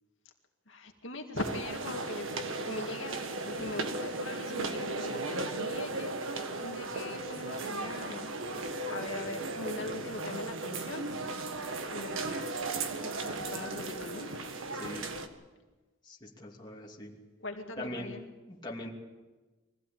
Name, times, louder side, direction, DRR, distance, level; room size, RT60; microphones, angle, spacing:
voice 1, 0.7-6.1 6.6-8.3 8.9-11.0 11.9-12.5 13.0-13.2 13.5-14.4 17.4-18.2, left 2 dB, 65° left, 2 dB, 2.2 m, -41 dB
sound 1, 1.4-15.3, right 2 dB, 70° right, 1.7 m, -36 dB
voice 2, 14.7-15.1 16.0-17.2 17.8-18.1 18.5-18.9, left 1 dB, 20° left, -2 dB, 2.9 m, -41 dB
23.5 x 16.0 x 8.8 m, 1.2 s
head